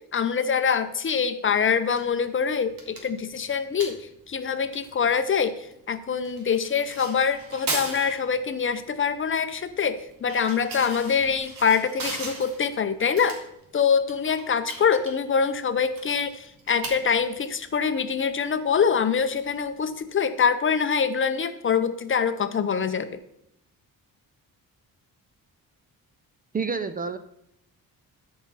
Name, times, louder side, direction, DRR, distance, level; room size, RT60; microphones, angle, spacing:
voice 1, 0.1-4.0 4.3-13.4 13.7-23.1, left 6 dB, 35° left, 10 dB, 0.6 m, -24 dB
sound 1, 1.7-20.1, right 3 dB, 75° right, 2.0 m, -40 dB
voice 2, 26.5-27.2, right 5 dB, 25° right, 10 dB, 0.5 m, -28 dB
13.0 x 4.8 x 4.1 m, 0.77 s
cardioid pair, 115°, 34 cm